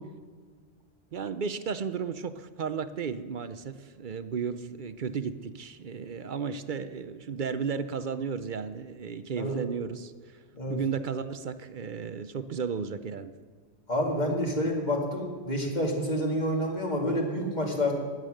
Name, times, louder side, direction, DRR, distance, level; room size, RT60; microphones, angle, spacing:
voice 1, 1.1-10.4 10.7-13.3, right 6 dB, 55° right, 12 dB, 0.7 m, -34 dB
voice 2, 13.9-18.0, equal, 40° left, 0 dB, 2.5 m, -28 dB
15.5 x 10.5 x 6.5 m, 1.5 s
omnidirectional pair, 1.1 m